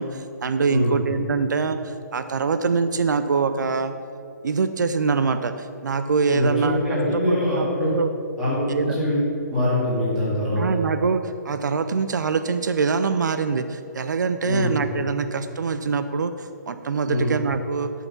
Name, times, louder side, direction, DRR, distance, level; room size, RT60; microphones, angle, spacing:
voice 1, 0.0-3.9 4.4-6.8 7.1-8.1 8.7-9.0 10.6-17.9, right 5 dB, 75° right, 10 dB, 0.5 m, -24 dB
voice 2, 6.3-7.9 8.4-9.2 9.5-10.8 14.4-14.8 17.1-17.3, left 1 dB, 5° right, -9 dB, 2.2 m, -23 dB
11.0 x 5.8 x 5.8 m, 2.6 s
hypercardioid pair, 175°, 10 cm